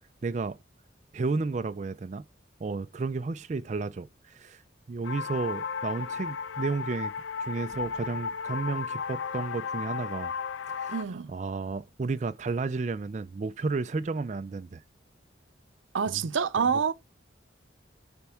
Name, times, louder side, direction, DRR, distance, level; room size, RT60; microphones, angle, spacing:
voice 1, 0.2-0.6 1.1-2.2 2.6-4.6 4.9-7.1 7.4-10.3 10.7-11.0 11.3-14.8 16.1-16.2 16.6-16.7, right 3 dB, 40° right, 0.3 m, -32 dB
sound 1, 5.0-11.0, left 6 dB, 80° left, 0.5 m, -34 dB
voice 2, 10.9-11.3 15.9-16.9, right 6 dB, 85° right, 0.6 m, -27 dB
11.0 x 4.4 x 3.5 m
head